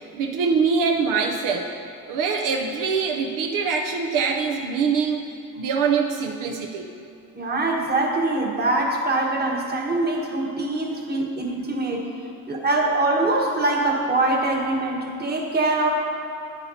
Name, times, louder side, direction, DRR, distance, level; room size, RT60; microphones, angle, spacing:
voice 1, 0.0-1.7 2.1-5.2 5.5-6.9, right 5 dB, 75° right, 2 dB, 0.7 m, -23 dB
voice 2, 7.4-12.0 12.5-15.9, right 2 dB, 30° right, 0 dB, 1.4 m, -23 dB
10.0 x 10.0 x 2.8 m, 2.5 s
cardioid pair, 100°, 32 cm